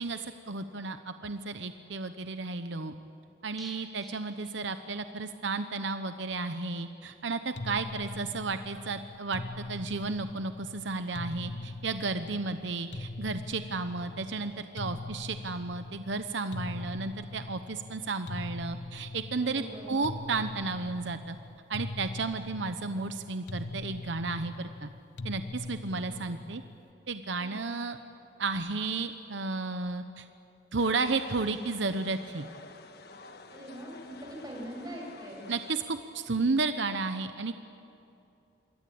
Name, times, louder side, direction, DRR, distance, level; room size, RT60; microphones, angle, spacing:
voice 1, 0.0-2.9 3.4-9.4 9.7-21.4 21.7-24.9 25.2-26.6 27.1-28.0 28.4-30.3 30.7-32.5 35.5-37.5, right 3 dB, 80° right, 9 dB, 0.9 m, -33 dB
sound 1, 3.6-5.4 5.6-5.7 6.1-6.2, equal, ahead, 2.4 m, -52 dB
sound 2, 7.6-26.9, left 2 dB, 75° left, 0.9 m, -42 dB
voice 2, 19.4-19.9 25.7-26.1 27.4-27.8 33.5-35.4, equal, 20° right, -1 dB, 6.4 m, -43 dB
sound 3, 30.8-35.8, left 3 dB, 60° left, 1.4 m, -50 dB
27.5 x 21.5 x 8.7 m, 2.7 s
head